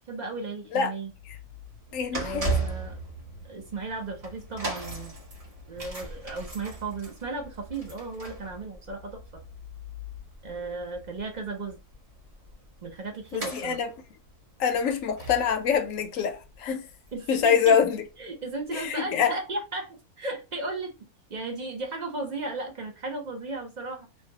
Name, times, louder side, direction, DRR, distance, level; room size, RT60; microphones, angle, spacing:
voice 1, 0.1-1.1 2.1-3.0 3.4-5.1 5.7-9.2 10.4-11.8 12.8-13.8 17.1-17.8 18.2-20.9 21.3-24.1, right 3 dB, 45° right, 0.6 m, -35 dB
sound 1, 1.1-17.4 17.7-17.9 18.7-18.8, right 2 dB, 25° right, 1.0 m, -38 dB
voice 2, 1.9-2.4 13.3-13.9 14.6-16.8 17.3-18.0 18.7-19.3, left 7 dB, 65° left, 0.9 m, -25 dB
3.2 x 2.3 x 2.8 m
omnidirectional pair, 1.7 m